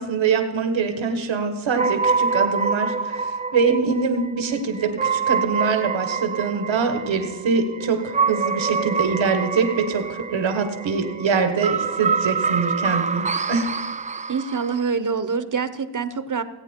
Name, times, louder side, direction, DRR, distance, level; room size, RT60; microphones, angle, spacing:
voice 1, 0.0-13.7, right 5 dB, 90° right, 7 dB, 1.5 m, -24 dB
sound 1, 1.8-14.8, right 5 dB, 20° right, 0.3 m, -26 dB
voice 2, 14.3-16.4, right 5 dB, 45° right, 13 dB, 0.8 m, -25 dB
19.0 x 8.5 x 4.5 m, 1.4 s
cardioid pair, 55°, 44 cm